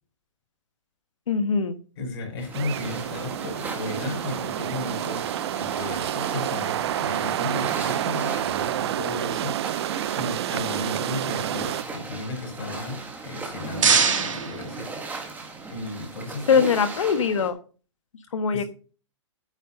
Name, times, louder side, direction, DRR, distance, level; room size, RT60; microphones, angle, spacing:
voice 1, 1.3-1.8 16.5-17.6 18.3-18.6, left 6 dB, 85° left, 9 dB, 1.4 m, -22 dB
voice 2, 2.0-5.2 5.6-14.9 15.7-16.7 18.5-18.7, left 2 dB, 50° left, 3 dB, 5.5 m, -34 dB
sound 1, 2.4-17.5, right 3 dB, 10° right, 1.9 m, -38 dB
sound 2, 2.5-11.8, right 12 dB, 55° right, 0.6 m, -29 dB
sound 3, 13.3-15.5, right 6 dB, 85° right, 2.4 m, -25 dB
9.8 x 5.6 x 6.5 m, 0.37 s
hypercardioid pair, 145°, 16 cm